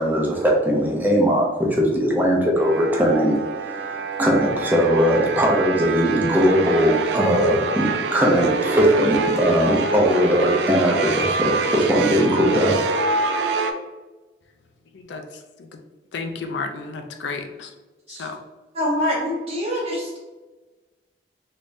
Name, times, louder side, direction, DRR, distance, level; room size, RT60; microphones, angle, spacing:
voice 1, 0.0-12.7, equal, 10° right, -1 dB, 0.6 m, -20 dB
sound 1, 2.6-13.7, right 3 dB, 75° right, 0.3 m, -25 dB
voice 2, 14.9-15.2 15.6-15.8 16.1-17.7 18.1-18.4, left 4 dB, 90° left, 5 dB, 0.5 m, -32 dB
voice 3, 18.7-20.2, left 1 dB, 35° right, -3 dB, 1.0 m, -25 dB
3.4 x 3.3 x 2.6 m, 1.2 s
head